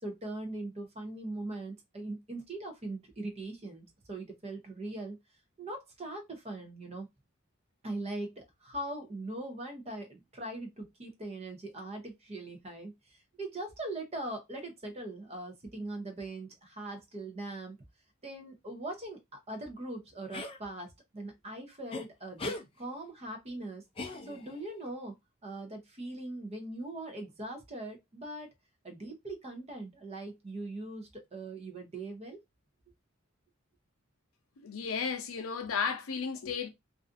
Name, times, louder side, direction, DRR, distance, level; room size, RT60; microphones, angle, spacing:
voice 1, 0.0-5.2 5.6-7.1 7.8-17.8 18.2-23.8 24.3-25.2 25.4-28.5 28.8-32.4, right 2 dB, 30° right, 0.6 m, -41 dB
sound 1, 20.3-20.6 21.9-22.0 22.4-22.6 24.0-24.6, left 2 dB, 25° left, 0.4 m, -38 dB
voice 2, 34.6-36.7, left 6 dB, 75° left, 0.5 m, -34 dB
2.4 x 2.4 x 2.4 m
head